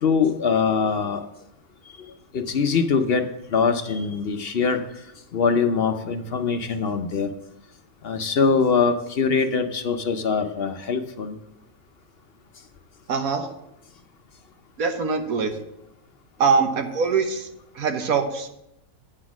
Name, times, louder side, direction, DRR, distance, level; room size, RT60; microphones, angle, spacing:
voice 1, 0.0-1.2 2.3-3.2 3.5-4.8 5.3-7.3 8.0-11.3, left 5 dB, 55° left, 7 dB, 0.7 m, -22 dB
voice 2, 13.1-13.5 14.8-15.5 16.4-17.5 17.7-18.5, right 5 dB, 70° right, 6 dB, 1.4 m, -23 dB
8.7 x 6.1 x 6.0 m, 0.83 s
omnidirectional pair, 1.6 m